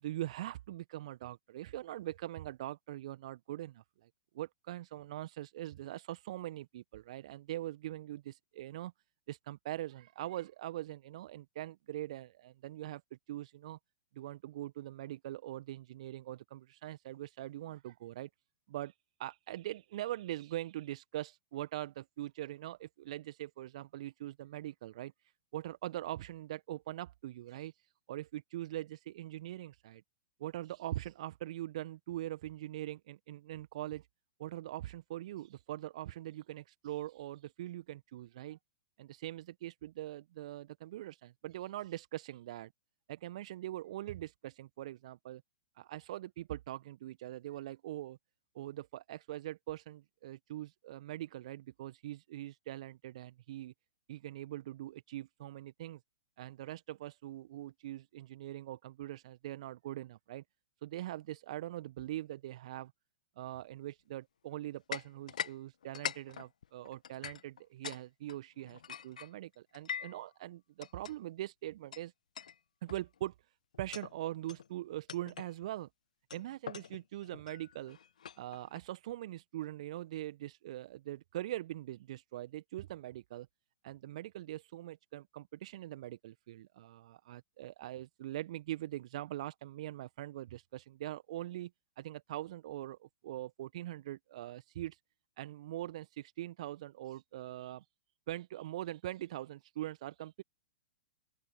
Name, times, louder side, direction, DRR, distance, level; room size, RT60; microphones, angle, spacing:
voice 1, 0.0-4.1 4.3-8.9 9.3-13.0 13.3-13.8 14.1-18.3 18.7-18.9 19.2-25.1 25.5-30.0 30.4-34.1 34.4-38.6 39.0-42.7 43.1-45.4 45.7-48.2 48.5-53.7 54.1-56.0 56.4-60.4 60.8-62.9 63.4-72.1 72.8-73.3 73.8-75.9 76.3-78.0 78.3-83.5 83.8-91.7 92.0-95.0 95.4-97.8 98.3-100.4, right 14 dB, 50° right, 1.4 m, -42 dB
sound 1, 64.9-65.6 65.8-68.0 68.3-70.2 70.8-71.1 71.9-72.0 72.3-72.6 72.9-73.2 73.7-74.1 74.5-74.7 75.1-75.5 76.3-78.8, left 8 dB, 65° left, 1.3 m, -43 dB
open air
figure-of-eight pair, 105°, 4 cm